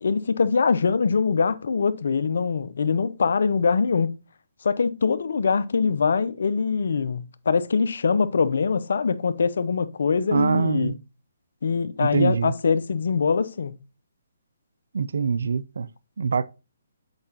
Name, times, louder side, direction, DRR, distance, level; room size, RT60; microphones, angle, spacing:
voice 1, 0.0-4.1 4.6-10.9 11.6-13.7, left 5 dB, 70° left, 0.5 m, -23 dB
voice 2, 10.3-11.0 12.0-12.5 14.9-15.9 16.2-16.5, right 5 dB, 75° right, 0.4 m, -24 dB
7.8 x 4.8 x 2.8 m
hypercardioid pair, 145°, 0 cm